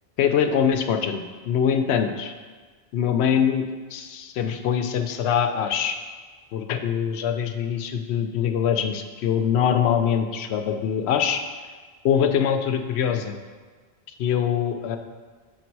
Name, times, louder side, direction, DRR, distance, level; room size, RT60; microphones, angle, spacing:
voice 1, 0.2-2.3 2.9-3.6 3.9-6.0 6.5-11.4 12.0-13.4 14.2-15.0, left 8 dB, 80° left, 7 dB, 0.8 m, -23 dB
6.8 x 4.0 x 4.6 m, 1.5 s
omnidirectional pair, 1.1 m